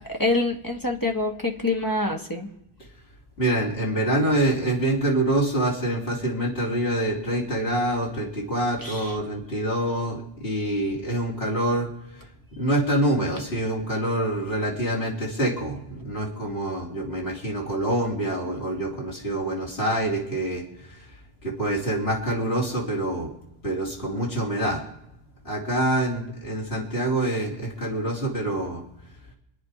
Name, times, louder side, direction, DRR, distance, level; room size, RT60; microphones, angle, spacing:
voice 1, 0.1-2.5 8.8-9.2, left 2 dB, 20° left, 2 dB, 1.5 m, -26 dB
voice 2, 3.4-21.2 21.4-23.3 23.6-24.8 25.4-28.8, right 1 dB, 60° left, -3 dB, 3.8 m, -26 dB
27.0 x 9.8 x 4.9 m, 0.83 s
omnidirectional pair, 1.2 m